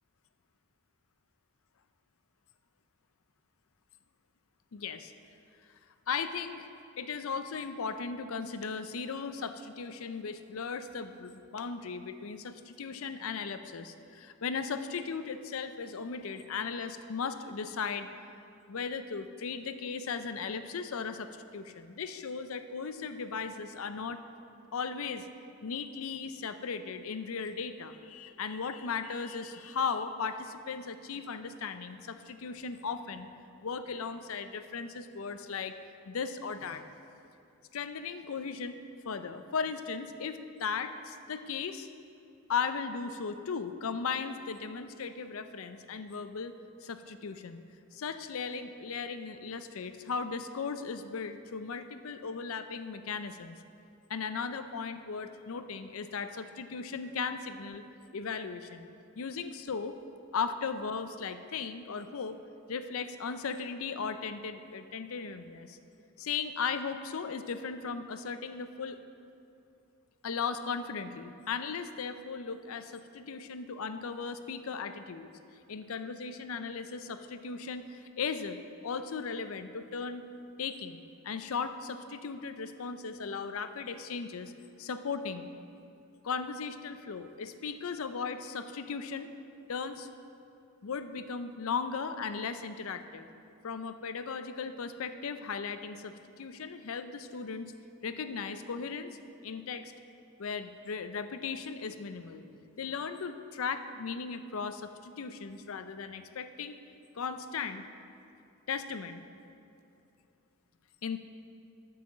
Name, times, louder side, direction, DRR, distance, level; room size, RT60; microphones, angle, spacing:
voice 1, 4.7-5.1 6.1-6.7 7.0-18.1 18.7-24.2 24.7-25.3 25.6-33.3 33.6-35.8 36.1-36.8 37.7-38.8 39.0-41.9 42.5-46.5 46.8-47.6 47.9-53.6 54.1-57.8 58.1-58.9 59.2-59.9 60.3-62.4 62.7-65.8 66.2-69.0 70.2-75.3 75.7-78.6 78.8-80.3 80.6-84.5 84.8-85.5 86.2-89.3 89.7-90.1 90.8-93.3 93.6-97.7 98.0-99.2 99.4-99.9 100.4-102.5 102.8-106.8 107.2-107.8 108.7-109.2 111.0-111.2, left 5 dB, 75° left, 10 dB, 0.5 m, -37 dB
10.0 x 5.7 x 7.1 m, 2.7 s
head